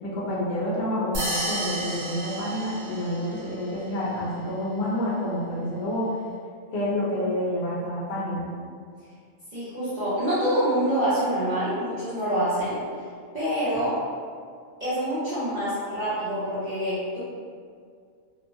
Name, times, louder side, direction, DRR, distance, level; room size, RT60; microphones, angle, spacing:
voice 1, 0.0-6.0 6.7-8.5, left 1 dB, 60° left, -6 dB, 0.9 m, -28 dB
sound 1, 1.1-3.4, right 1 dB, 65° right, 1.0 m, -31 dB
voice 2, 9.5-12.8 13.3-14.0 14.8-17.2, equal, 40° right, -13 dB, 0.7 m, -26 dB
3.0 x 2.0 x 2.6 m, 2.1 s
omnidirectional pair, 1.4 m